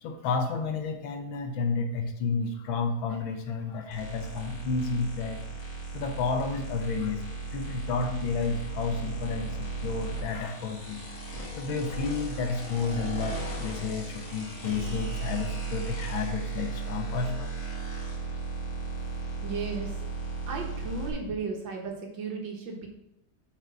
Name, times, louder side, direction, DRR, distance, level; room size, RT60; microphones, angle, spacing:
voice 1, 0.0-5.4 5.9-7.2 7.5-11.0 11.5-17.5, left 4 dB, 75° left, 5 dB, 1.7 m, -31 dB
sound 1, 3.9-21.1, right 4 dB, 40° left, 2.2 m, -36 dB
voice 2, 19.4-20.0 20.5-22.9, right 4 dB, 65° right, 1 dB, 1.9 m, -35 dB
6.2 x 5.1 x 6.0 m, 0.84 s
omnidirectional pair, 2.2 m